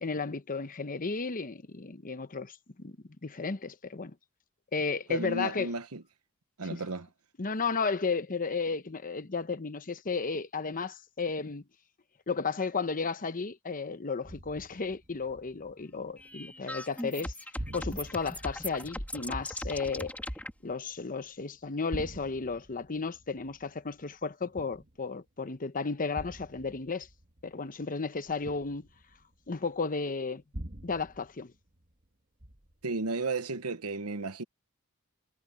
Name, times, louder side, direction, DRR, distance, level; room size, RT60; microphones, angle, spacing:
voice 1, 0.0-3.0 3.2-4.1 4.7-5.7 7.4-11.6 12.3-17.3 17.7-20.1 20.6-27.1 27.4-28.9 29.5-30.4 30.8-31.5, left 4 dB, 40° left, 1.0 m, -33 dB
voice 2, 5.1-6.0 6.6-7.1 32.8-34.4, right 3 dB, 75° right, 1.2 m, -33 dB
sound 1, 14.2-16.5 16.8-17.3 17.6-21.3 21.7-25.3 26.1-29.7 30.5-32.1 32.4-32.9, right 1 dB, 40° right, 1.6 m, -47 dB
sound 2, 16.2-20.5, left 1 dB, 5° left, 2.9 m, -38 dB
head